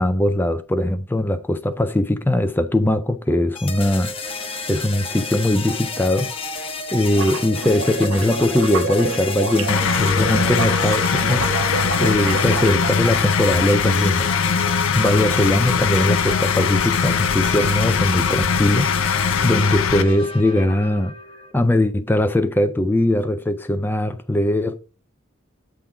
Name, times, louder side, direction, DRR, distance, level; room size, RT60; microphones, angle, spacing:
voice 1, 0.0-4.1 4.7-6.3 6.9-11.5 12.0-14.3 14.9-19.0 19.4-21.2 21.5-24.8, left 1 dB, 10° left, 0.3 m, -20 dB
sound 1, 3.6-21.5, left 3 dB, 25° left, 0.9 m, -31 dB
sound 2, 7.1-13.0, right 4 dB, 65° right, 0.7 m, -29 dB
sound 3, 9.7-20.0, left 6 dB, 70° left, 0.5 m, -21 dB
8.1 x 3.7 x 5.7 m
head